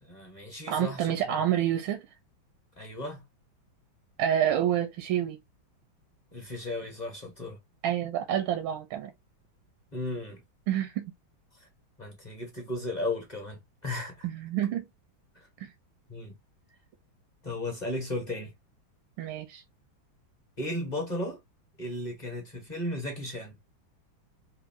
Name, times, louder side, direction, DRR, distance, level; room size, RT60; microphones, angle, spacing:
voice 1, 0.0-1.4 2.8-3.2 6.3-7.6 9.9-10.4 11.6-11.7 12.0-14.3 15.4-15.5 16.1-16.4 17.4-18.5 20.6-21.4 21.8-23.5, left 1 dB, 30° left, 0.8 m, -35 dB
voice 2, 0.7-2.0 4.2-5.4 7.8-9.1 10.7-11.1 14.2-14.8 15.6-15.7 19.2-19.6, right 10 dB, 90° right, 1.5 m, -28 dB
4.4 x 2.6 x 2.6 m
omnidirectional pair, 2.2 m